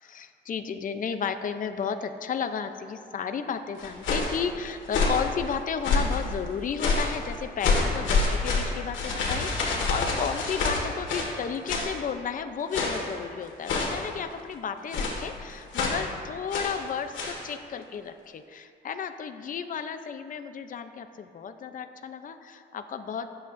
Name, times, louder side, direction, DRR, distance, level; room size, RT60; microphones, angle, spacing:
voice 1, 0.0-23.3, left 7 dB, 40° left, 8 dB, 0.6 m, -33 dB
sound 1, 3.8-4.4 4.9-5.3 5.8-6.2 6.8-7.2 7.6-11.4 11.7-12.0 12.7-13.1 13.7-14.1 14.9-15.3 15.7-16.1 16.5-16.8 17.1-17.4, left 3 dB, 75° left, 1.9 m, -27 dB
18.5 x 7.9 x 2.6 m, 2.2 s
cardioid pair, 90°, 20 cm